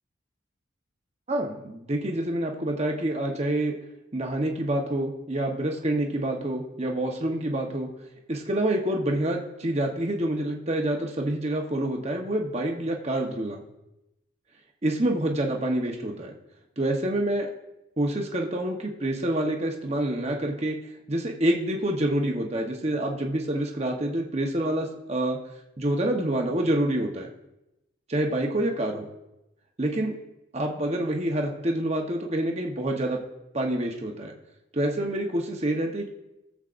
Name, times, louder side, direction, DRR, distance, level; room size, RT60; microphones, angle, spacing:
voice 1, 1.3-3.7 4.1-7.9 8.3-13.6 14.8-16.3 16.8-17.5 18.0-20.8 21.1-25.4 25.8-27.3 28.1-29.1 29.8-30.2 30.5-33.2 33.5-34.3 34.7-36.1, right 1 dB, 30° right, 1 dB, 0.9 m, -27 dB
18.5 x 7.3 x 2.5 m, 0.93 s
head